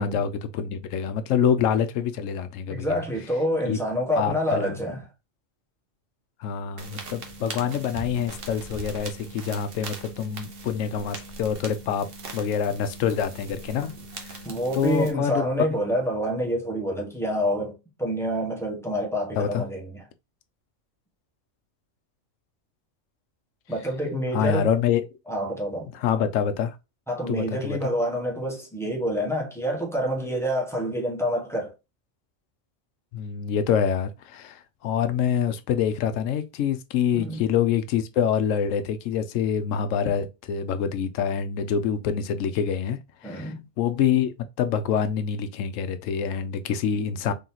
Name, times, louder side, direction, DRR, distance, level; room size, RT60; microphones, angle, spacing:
voice 1, 0.0-3.0 3.7-3.8 4.2-4.8 6.4-12.1 12.3-13.9 14.2-14.4 14.7-15.4 19.4-19.6 24.3-25.0 25.9-26.8 27.3-27.8 33.1-44.3 44.6-47.3, left 8 dB, 90° left, 0.9 m, -26 dB
voice 2, 2.7-5.0 14.4-20.0 23.7-24.7 25.3-25.9 27.1-31.7 37.1-37.5 43.2-43.6, equal, ahead, 1.2 m, -27 dB
sound 1, 6.8-15.1, right 3 dB, 50° right, 1.1 m, -40 dB
3.9 x 3.5 x 2.8 m
omnidirectional pair, 1.3 m